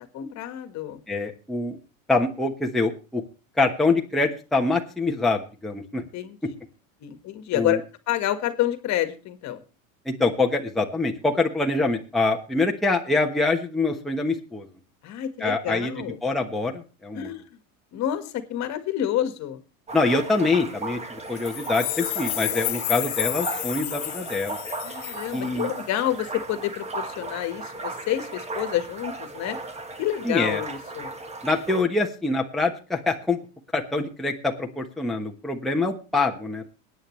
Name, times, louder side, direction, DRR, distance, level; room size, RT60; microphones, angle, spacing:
voice 1, 0.1-1.0 5.9-6.4 7.0-7.8 8.1-9.6 15.0-16.2 17.1-17.4 17.9-19.6 24.8-29.6 30.0-31.1, left 12 dB, 40° left, 10 dB, 1.6 m, -28 dB
voice 2, 1.1-1.8 2.1-3.2 3.6-6.0 7.6-7.8 10.0-14.7 15.4-17.3 19.9-21.0 21.3-24.6 25.3-25.7 30.2-30.6 31.4-33.4 33.7-36.6, left 3 dB, ahead, 0 dB, 1.1 m, -25 dB
sound 1, 19.9-31.8, right 3 dB, 15° right, 1.5 m, -36 dB
sound 2, 21.4-25.8, left 26 dB, 65° left, 0.6 m, -31 dB
21.5 x 9.3 x 3.2 m, 0.33 s
supercardioid pair, 135°, 41 cm